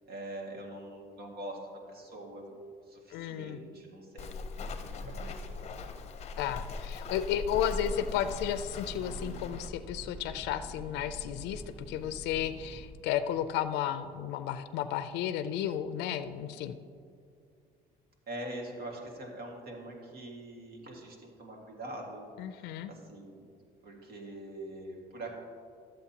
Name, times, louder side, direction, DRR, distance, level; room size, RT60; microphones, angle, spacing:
voice 1, 0.0-2.6 2.9-4.3 4.6-5.4 18.3-22.3 22.6-23.5 23.8-25.4, right 1 dB, 70° right, 0 dB, 1.9 m, -43 dB
voice 2, 3.1-3.6 6.4-16.8 22.4-22.9, left 10 dB, 85° left, 11 dB, 0.4 m, -33 dB
Walk footsteps, 4.2-9.7, left 3 dB, 40° left, 0.6 m, -40 dB
Breathing / Train, 7.5-13.1, equal, 35° right, 1.5 m, -46 dB
13.0 x 7.6 x 2.9 m, 2.4 s
cardioid pair, 110°, 17 cm